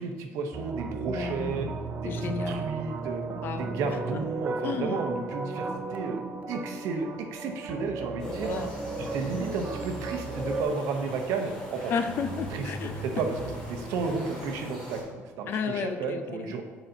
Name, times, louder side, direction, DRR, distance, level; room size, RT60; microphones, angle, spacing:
voice 1, 0.0-1.7 2.0-3.2 3.6-6.2 6.5-8.5 9.0-11.9 12.5-12.7 13.0-13.4 13.7-16.6, right 4 dB, 75° right, 5 dB, 0.8 m, -33 dB
sound 1, 0.5-10.6, right 4 dB, 30° right, 0.4 m, -35 dB
voice 2, 1.1-1.7 2.0-2.7 3.3-3.8 4.1-4.2 4.6-5.0 8.4-9.1 11.9-13.0 15.5-16.5, left 6 dB, 45° left, 8 dB, 0.4 m, -33 dB
sound 2, 8.2-15.0, equal, 15° left, 1.9 m, -38 dB
9.9 x 4.1 x 2.7 m, 1.5 s
cardioid pair, 160°, 5 cm